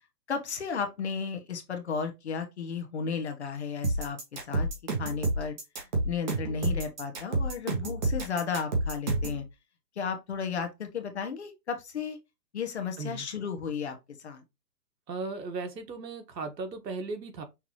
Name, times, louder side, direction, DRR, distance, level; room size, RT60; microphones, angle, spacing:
voice 1, 0.3-4.7 5.0-5.6 6.0-9.5 10.0-12.2 12.5-14.4, left 6 dB, 40° left, 1.0 m, -34 dB
sound 1, 3.8-9.4, right 2 dB, 25° right, 1.2 m, -29 dB
voice 2, 15.1-17.4, right 3 dB, 80° right, 1.6 m, -36 dB
5.9 x 2.7 x 3.0 m
hypercardioid pair, 175°, 49 cm